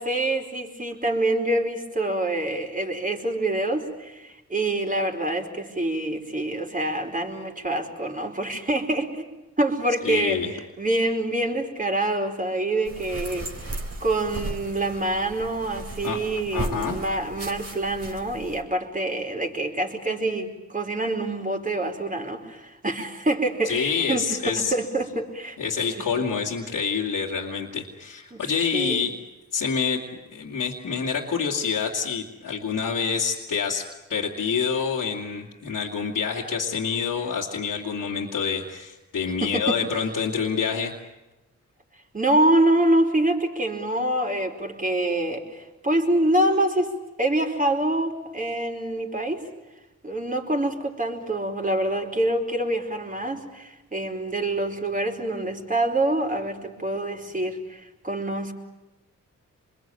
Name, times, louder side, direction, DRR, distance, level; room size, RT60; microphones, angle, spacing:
voice 1, 0.0-9.2 9.6-13.5 14.0-25.6 28.3-28.4 28.7-29.0 39.4-39.8 42.1-46.9 47.2-49.4 50.0-58.5, right 1 dB, 25° right, 2 dB, 4.6 m, -26 dB
voice 2, 10.0-10.5 16.0-16.2 16.5-17.0 23.6-24.7 25.6-29.1 29.5-30.0 30.3-40.9, left 6 dB, 75° left, -3 dB, 2.5 m, -27 dB
sound 1, 12.9-18.6, right 2 dB, 45° right, 4.0 m, -36 dB
27.5 x 21.5 x 9.1 m, 1.0 s
cardioid pair, 55°, 32 cm